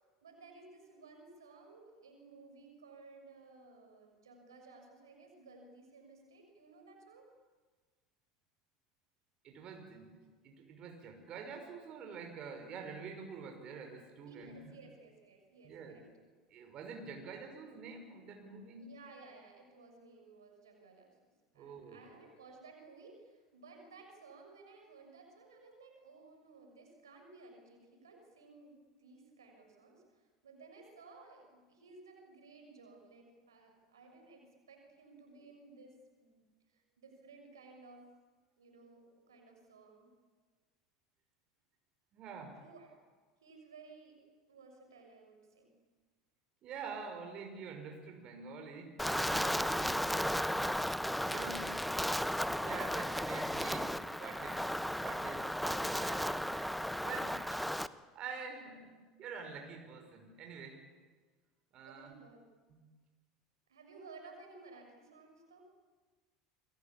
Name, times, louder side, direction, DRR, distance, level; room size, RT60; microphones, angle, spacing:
voice 1, 0.2-7.3 14.2-16.0 17.1-17.3 18.8-36.4 36.7-38.1 38.6-40.1 42.6-43.0 43.4-44.2 44.5-45.7 61.8-62.4 63.7-65.7, right 3 dB, 80° right, 3 dB, 6.6 m, -57 dB
voice 2, 9.4-10.2 10.4-14.8 15.6-16.1 16.5-18.9 21.5-22.0 42.1-42.6 46.6-50.0 50.6-50.7 51.3-51.7 52.5-56.7 57.0-57.6 58.1-60.8 61.7-62.1 62.7-62.8, right 5 dB, 45° right, 4 dB, 5.8 m, -47 dB
Wind, 49.0-57.9, equal, ahead, 1.0 m, -35 dB
28.5 x 23.0 x 8.7 m, 1.4 s
hypercardioid pair, 75°, 2 cm